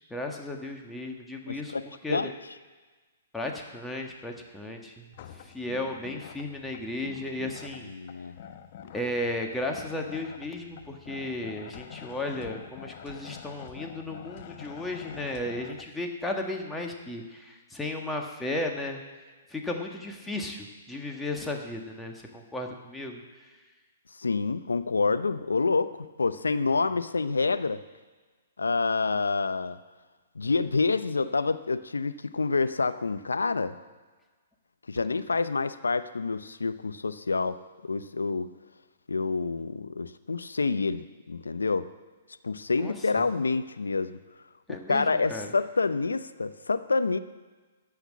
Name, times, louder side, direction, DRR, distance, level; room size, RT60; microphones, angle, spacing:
voice 1, 0.1-1.7 2.0-2.3 3.3-7.9 8.9-19.0 19.5-23.2 42.8-43.2 44.7-45.5, left 1 dB, 5° left, 1 dB, 1.6 m, -35 dB
voice 2, 1.5-1.8 2.1-2.3 7.8-8.4 24.1-27.8 28.6-29.8 30.3-33.8 34.9-38.5 39.1-41.9 42.4-44.2 44.7-47.2, left 4 dB, 85° left, 12 dB, 0.7 m, -28 dB
sound 1, 5.1-15.8, left 9 dB, 50° left, 0.9 m, -46 dB
14.0 x 6.0 x 8.4 m, 1.3 s
hypercardioid pair, 125°, 0 cm